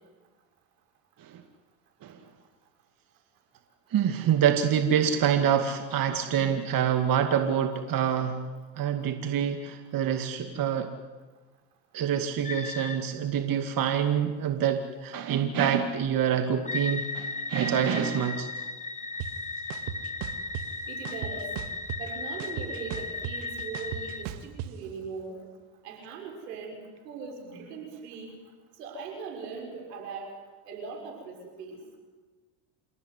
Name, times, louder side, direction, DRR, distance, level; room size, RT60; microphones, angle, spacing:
voice 1, 3.9-8.4 8.8-10.9 11.9-18.5, right 8 dB, 45° right, 7 dB, 2.3 m, -26 dB
sound 1, 12.4-13.0 16.6-24.2, left 3 dB, 15° left, 2.6 m, -36 dB
sound 2, 19.2-19.3 19.7-20.6 21.0-22.1 22.4-24.7, right 10 dB, 65° right, 2.1 m, -36 dB
voice 2, 20.9-21.5 22.0-25.4 25.8-28.4 28.7-30.3 30.6-31.8, right 4 dB, 85° right, 3 dB, 6.8 m, -40 dB
28.0 x 17.5 x 9.8 m, 1.3 s
hypercardioid pair, 85°, 46 cm